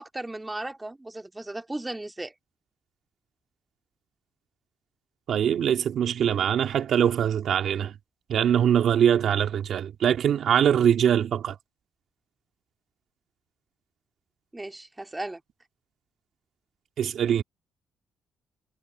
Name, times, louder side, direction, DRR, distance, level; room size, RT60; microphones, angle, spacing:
voice 1, 0.0-2.3 14.5-15.4, right 2 dB, 15° right, 2.0 m, -36 dB
voice 2, 5.3-7.9 8.3-11.6 17.0-17.4, right 9 dB, 65° right, 2.2 m, -23 dB
cardioid pair, 90°, 0 cm